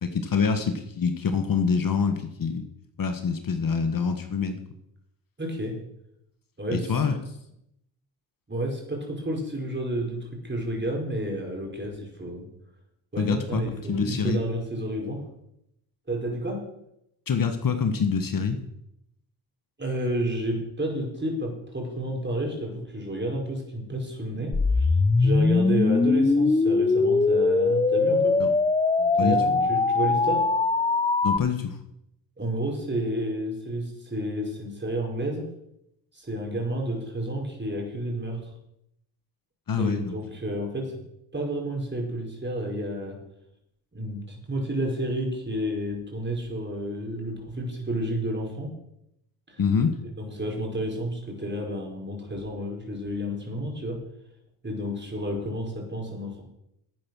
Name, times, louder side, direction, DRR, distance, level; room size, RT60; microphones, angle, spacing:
voice 1, 0.0-2.6 3.0-4.6 6.7-7.2 13.2-13.6 13.9-14.4 17.3-18.6 28.4-28.5 29.0-29.7 31.2-31.8 39.7-40.2 49.6-50.0, left 5 dB, 45° left, 7 dB, 1.5 m, -25 dB
voice 2, 5.4-5.7 6.6-7.1 8.5-12.5 13.1-15.2 16.1-16.6 19.8-28.4 29.2-30.4 32.4-35.5 36.1-38.5 39.8-41.0 41.3-43.2 43.9-48.7 49.5-49.6 50.2-54.0 54.6-56.4, right 1 dB, 25° right, 0 dB, 5.2 m, -31 dB
sound 1, 24.5-31.4, left 3 dB, 15° left, 0.5 m, -21 dB
11.0 x 9.0 x 6.3 m, 0.81 s
cardioid pair, 70°, 46 cm